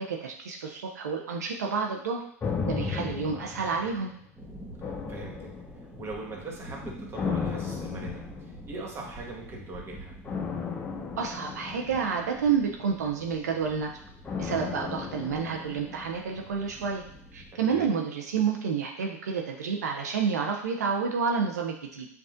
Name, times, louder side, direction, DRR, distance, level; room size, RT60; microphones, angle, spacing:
voice 1, 0.0-2.2 2.6-4.1 11.2-13.9 14.4-17.0 17.3-22.1, right 6 dB, 85° right, 1 dB, 0.5 m, -29 dB
sound 1, 2.4-4.3 4.8-6.1 7.1-8.9 10.3-12.7 14.3-16.4 16.7-16.8, left 5 dB, 20° left, 0.5 m, -35 dB
sound 2, 4.4-17.5, equal, 10° right, 1.0 m, -47 dB
voice 2, 5.1-5.5 6.0-10.1 17.5-17.9, right 2 dB, 30° right, -1 dB, 1.4 m, -41 dB
6.9 x 2.4 x 2.5 m, 0.70 s
hypercardioid pair, 95°, 9 cm